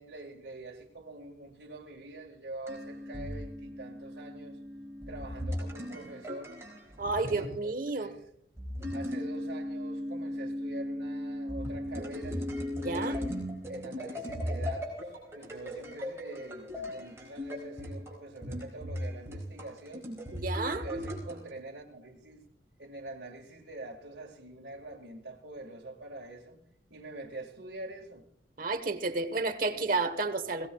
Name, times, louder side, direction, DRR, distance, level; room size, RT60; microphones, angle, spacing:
voice 1, 0.0-4.6 5.1-6.6 7.1-8.3 8.9-12.4 12.9-20.1 20.6-22.5 22.8-26.6 26.9-28.2 29.7-29.8, right 2 dB, 75° right, -3 dB, 1.7 m, -45 dB
sound 1, 2.7-7.6 8.6-21.5, left 1 dB, 15° right, 4.5 m, -37 dB
voice 2, 7.0-8.1 12.8-13.2 20.3-20.8 28.6-30.7, right 3 dB, 50° right, 11 dB, 1.1 m, -31 dB
22.5 x 17.5 x 2.3 m, 0.65 s
head